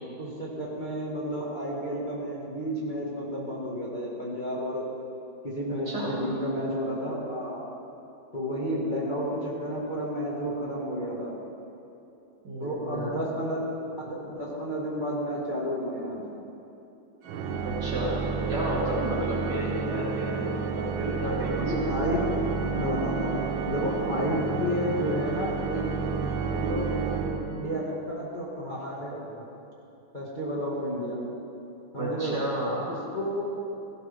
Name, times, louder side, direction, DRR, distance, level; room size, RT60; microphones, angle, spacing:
voice 1, 0.0-4.8 5.4-7.6 8.3-11.3 12.6-13.6 14.1-16.2 21.5-25.8 26.2-29.4 30.1-31.2 31.9-32.4 33.1-33.5, equal, 25° left, -6 dB, 2.1 m, -31 dB
voice 2, 5.7-6.2 12.4-13.2 17.6-18.2 18.5-22.0 32.0-32.8, equal, 55° right, -6 dB, 4.3 m, -32 dB
Organ, 17.2-28.0, right 5 dB, 85° right, 1.7 m, -31 dB
18.0 x 15.5 x 3.6 m, 2.8 s
omnidirectional pair, 2.1 m